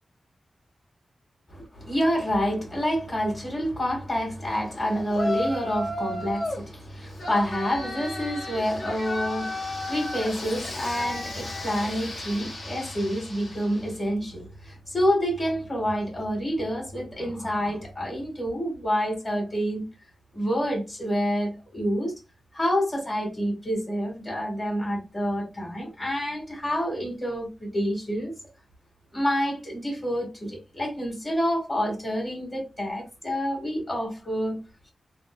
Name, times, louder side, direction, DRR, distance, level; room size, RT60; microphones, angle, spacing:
voice 1, 1.5-19.9 20.3-22.1 22.5-28.3 29.1-34.6, equal, 35° left, 1.4 m, -28 dB
Yell, 5.1-6.6 7.2-13.9, left 1 dB, 70° left, 1.1 m, -33 dB
3.4 x 2.0 x 2.2 m
wide cardioid pair, 90°, 0 cm